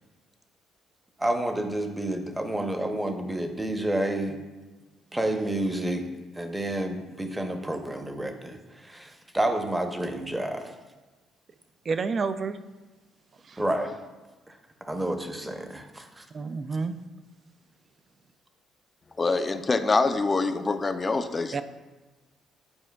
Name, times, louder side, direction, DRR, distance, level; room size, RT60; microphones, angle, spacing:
voice 1, 1.2-4.4 5.1-6.1 6.3-10.7 13.6-13.9 14.9-16.2, right 1 dB, 15° right, 6 dB, 0.7 m, -29 dB
voice 2, 11.9-12.6 13.5-13.6 16.3-16.9 21.5-21.6, right 4 dB, 45° right, 11 dB, 0.4 m, -29 dB
voice 3, 19.2-21.6, left 3 dB, 30° left, 9 dB, 0.4 m, -25 dB
9.7 x 4.4 x 2.3 m, 1.2 s
supercardioid pair, 70°, 0 cm